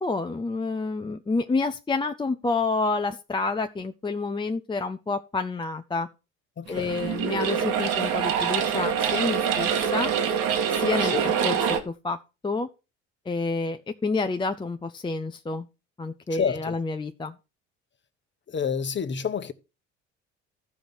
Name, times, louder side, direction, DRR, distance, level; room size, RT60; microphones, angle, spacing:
voice 1, 0.0-6.1 6.7-10.1 10.7-11.6 11.9-12.2 12.4-12.7 13.3-15.7 16.0-17.3, left 3 dB, 15° left, 0.7 m, -29 dB
voice 2, 6.6-6.9 11.0-11.2 16.3-16.8 18.5-19.5, left 6 dB, 30° left, 1.1 m, -28 dB
sound 1, 6.7-11.8, right 7 dB, 60° right, 1.8 m, -25 dB
14.0 x 5.1 x 6.2 m
figure-of-eight pair, 55°, 37 cm